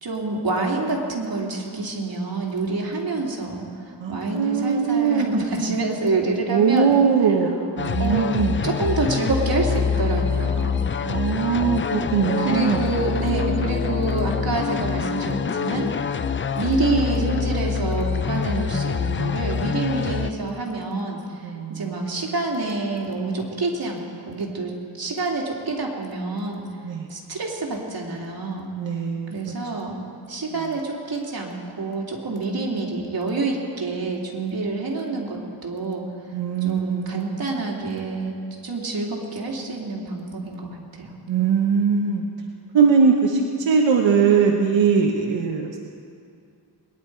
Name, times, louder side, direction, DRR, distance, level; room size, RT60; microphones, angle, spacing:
voice 1, 0.0-3.7 4.1-6.9 8.0-8.3 8.6-10.8 12.4-15.9 16.5-26.7 27.1-28.7 29.3-30.0 30.3-36.0 36.6-38.4 38.6-41.1, right 3 dB, 55° right, -2 dB, 2.6 m, -27 dB
voice 2, 4.0-5.3 6.5-8.7 11.0-12.9 21.4-22.1 26.8-27.1 28.8-29.3 36.3-37.5 41.3-42.3 42.7-45.8, right 6 dB, 90° right, 0 dB, 1.2 m, -21 dB
sound 1, 7.8-20.3, left 6 dB, 30° left, 0.4 m, -25 dB
22.0 x 10.5 x 4.6 m, 2.4 s
wide cardioid pair, 100°, 44 cm